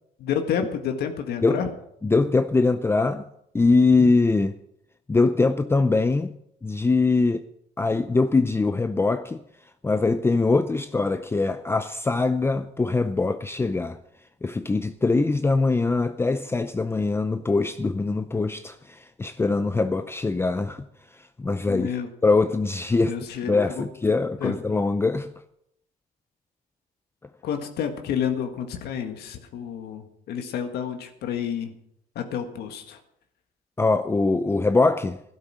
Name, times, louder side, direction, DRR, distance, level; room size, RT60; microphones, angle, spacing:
voice 1, 0.2-1.7 21.7-22.1 23.1-23.9 24.4-24.5 27.4-31.7 32.2-33.0, left 8 dB, 70° left, 1.7 m, -29 dB
voice 2, 2.0-3.3 3.5-4.6 5.1-6.3 6.6-7.5 7.8-9.4 9.8-14.0 14.4-20.8 21.4-21.9 22.2-23.1 23.5-25.3 33.8-35.2, left 3 dB, 15° left, 0.6 m, -22 dB
12.5 x 12.0 x 6.2 m
cardioid pair, 110°, 17 cm